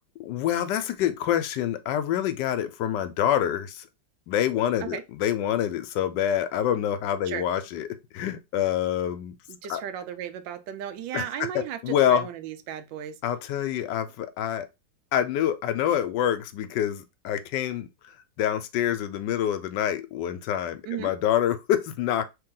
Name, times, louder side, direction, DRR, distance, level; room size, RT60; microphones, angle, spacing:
voice 1, 0.2-3.9 4.3-7.9 8.1-9.3 9.7-9.8 11.1-11.2 11.5-12.3 13.2-14.7 15.1-17.9 18.4-22.2, left 10 dB, 75° left, 1.2 m, -26 dB
voice 2, 9.5-13.1 20.8-21.1, right 10 dB, 90° right, 1.3 m, -35 dB
3.2 x 2.9 x 3.7 m
omnidirectional pair, 2.0 m